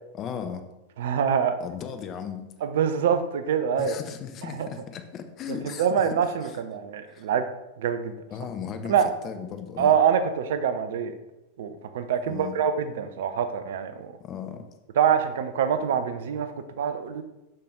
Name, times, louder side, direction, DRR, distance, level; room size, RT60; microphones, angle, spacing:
voice 1, 0.1-0.6 1.6-2.5 3.8-6.6 7.1-7.3 8.3-8.9 9.2-10.0 12.3-12.5 14.2-14.6, left 7 dB, 30° left, 8 dB, 0.8 m, -36 dB
voice 2, 1.0-1.6 2.6-4.0 4.6-4.7 5.6-7.5 7.8-8.1 8.9-9.1 9.8-11.1 11.6-14.2 15.0-17.2, right 7 dB, 55° right, 10 dB, 0.6 m, -25 dB
6.5 x 5.8 x 3.7 m, 0.99 s
figure-of-eight pair, 90°, 0 cm